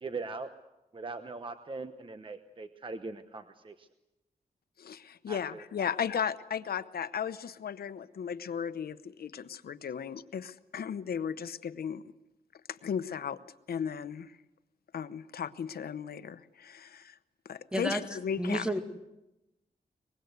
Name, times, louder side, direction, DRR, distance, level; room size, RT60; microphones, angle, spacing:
voice 1, 0.0-0.5 0.9-3.9 5.3-5.9, right 3 dB, 35° right, 9 dB, 1.0 m, -41 dB
voice 2, 4.8-12.0 12.7-13.4 13.7-14.4 14.9-17.2 17.4-18.7, left 7 dB, 85° left, 13 dB, 0.9 m, -35 dB
voice 3, 17.7-18.0 18.4-18.8, right 1 dB, 5° right, 6 dB, 2.1 m, -30 dB
23.5 x 20.5 x 8.1 m, 0.94 s
wide cardioid pair, 125°, 15 cm